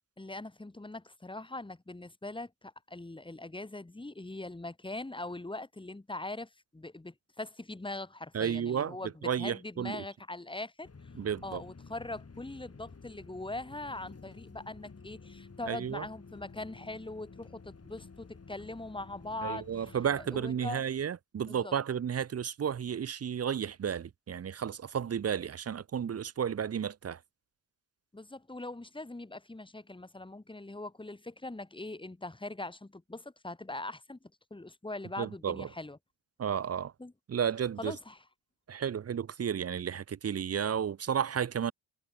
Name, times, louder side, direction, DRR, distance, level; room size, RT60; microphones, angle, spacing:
voice 1, 0.2-9.1 9.4-10.9 11.4-20.0 20.3-20.8 21.5-21.7 28.1-34.2 34.5-36.0 37.0-37.1 37.8-38.2, left 2 dB, 10° left, 1.6 m, -41 dB
voice 2, 8.3-9.0 9.2-10.0 11.1-11.6 15.7-16.1 19.4-27.2 35.2-35.7 36.4-36.9 37.3-38.0 38.7-41.7, right 8 dB, 35° right, 0.6 m, -32 dB
sound 1, 10.8-20.5, left 4 dB, 30° left, 3.9 m, -51 dB
cardioid pair, 95°, 45 cm